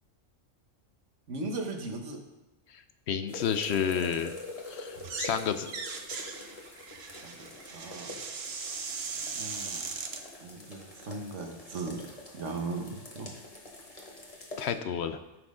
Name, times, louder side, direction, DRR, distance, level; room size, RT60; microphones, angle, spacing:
voice 1, 1.3-2.2 7.2-8.1 9.3-9.9 10.4-12.1 12.3-13.4, right 3 dB, 75° right, 3 dB, 1.5 m, -38 dB
voice 2, 3.1-4.3 4.7-4.9 5.2-5.7 14.6-15.2, left 7 dB, 65° left, 10 dB, 0.8 m, -30 dB
sound 1, 3.3-14.7, left 2 dB, 30° left, 1.5 m, -46 dB
sound 2, 5.0-5.4 5.7-10.2, right 5 dB, 60° right, 1.1 m, -38 dB
14.0 x 6.2 x 3.7 m, 1.0 s
omnidirectional pair, 1.3 m